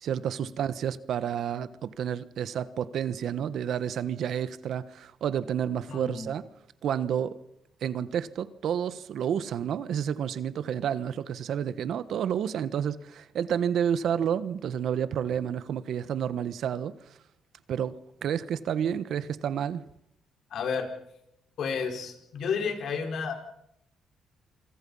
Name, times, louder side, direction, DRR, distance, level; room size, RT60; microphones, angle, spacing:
voice 1, 0.0-6.5 6.8-7.4 7.8-17.1 17.7-18.0 18.2-19.8, right 8 dB, 70° right, 1.2 m, -30 dB
voice 2, 5.9-6.3 20.5-20.9 21.6-23.3, left 5 dB, 65° left, 5.0 m, -31 dB
27.0 x 25.0 x 5.6 m
cardioid pair, 90°, 0 cm